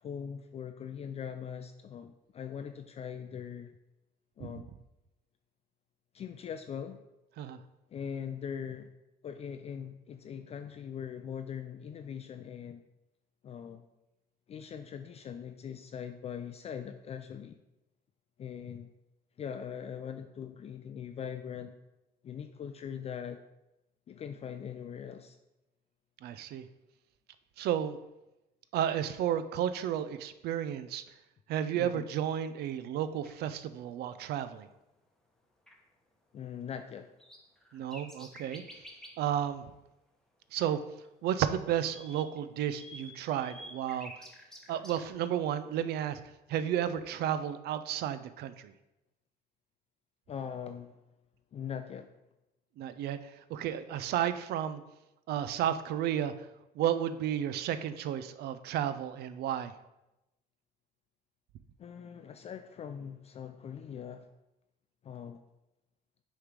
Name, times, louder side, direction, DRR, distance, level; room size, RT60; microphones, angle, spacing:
voice 1, 0.0-3.7 4.4-4.7 6.1-7.0 7.9-8.9 9.2-12.8 13.4-13.9 14.5-17.5 18.4-18.9 19.4-21.7 22.2-23.4 24.1-25.4 31.7-32.0 36.3-37.1 50.3-51.0 51.5-52.2 61.8-64.3 65.0-65.4, left 8 dB, 40° left, 7 dB, 0.4 m, -41 dB
voice 2, 26.2-26.6 27.6-28.0 28.7-31.0 31.5-34.7 37.7-38.6 39.2-39.6 40.5-40.8 41.2-44.1 44.7-46.2 46.5-48.7 52.8-53.2 53.5-54.8 55.3-56.3 56.8-59.7, right 10 dB, 70° right, 12 dB, 0.5 m, -32 dB
sound 1, 33.2-33.3 35.7-35.8 37.0-39.3 40.6-40.7 41.0-45.1, equal, 5° left, 1.0 m, -50 dB
6.5 x 3.2 x 5.1 m, 0.93 s
cardioid pair, 110°, 17 cm